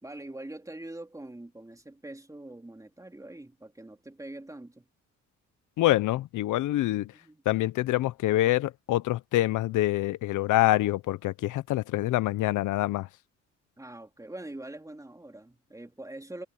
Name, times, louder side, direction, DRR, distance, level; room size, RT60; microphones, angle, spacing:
voice 1, 0.0-4.9 7.1-7.4 13.8-16.4, right 1 dB, 10° right, 3.0 m, -43 dB
voice 2, 5.8-7.1 7.5-13.1, left 16 dB, 80° left, 0.8 m, -26 dB
cardioid pair, 90°, 30 cm